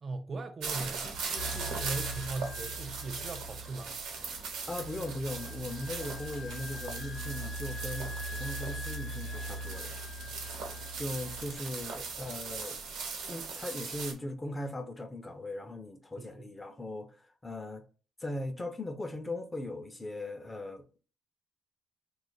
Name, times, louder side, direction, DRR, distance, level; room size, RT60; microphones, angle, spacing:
voice 1, 0.0-4.0 10.2-10.6 16.2-16.5, right 3 dB, 40° right, 0.3 m, -40 dB
sound 1, 0.6-14.1, right 5 dB, 90° right, 1.0 m, -40 dB
sound 2, 1.4-12.6, equal, 75° left, 0.5 m, -42 dB
voice 2, 4.7-10.0 11.0-12.8 13.3-17.1 17.4-17.8 18.2-20.8, left 1 dB, 20° left, 0.6 m, -39 dB
2.8 x 2.4 x 3.9 m
cardioid pair, 90°, 0 cm